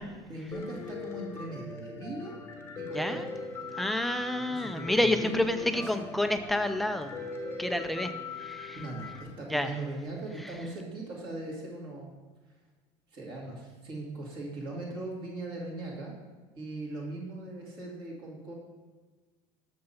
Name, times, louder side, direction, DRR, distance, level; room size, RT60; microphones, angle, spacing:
voice 1, 0.3-2.4 2.8-3.3 4.5-6.1 8.7-12.1 13.1-16.2 16.5-18.5, right 2 dB, 40° right, -3 dB, 2.4 m, -39 dB
Piano, 0.5-9.2, left 4 dB, 20° left, 1.0 m, -40 dB
voice 2, 2.9-3.3 3.7-7.1 7.6-8.8 9.5-9.7 10.4-10.5, left 1 dB, ahead, 7 dB, 0.4 m, -29 dB
7.0 x 6.6 x 5.7 m, 1.3 s
cardioid pair, 160°, 13 cm